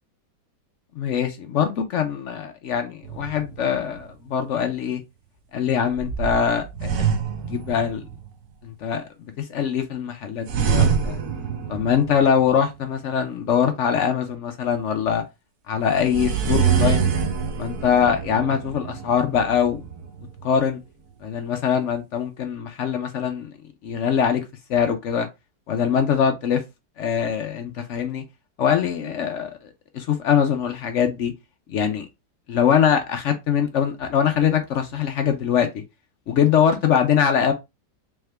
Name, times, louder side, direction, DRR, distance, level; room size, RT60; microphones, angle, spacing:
voice 1, 1.0-5.0 5.5-7.1 7.5-8.0 8.6-9.0 9.4-11.2 11.7-15.2 15.7-17.1 17.6-19.8 20.4-20.8 21.2-23.5 23.8-24.4 24.7-25.3 25.7-26.6 27.0-28.2 28.6-29.5 29.9-31.3 31.7-32.1 32.5-35.8 36.3-37.5, left 8 dB, 70° left, 0.7 m, -22 dB
sound 1, 3.0-4.0 5.9-8.3 10.5-12.6 15.9-20.6, right 7 dB, 65° right, 1.3 m, -25 dB
3.5 x 3.4 x 3.3 m
omnidirectional pair, 1.9 m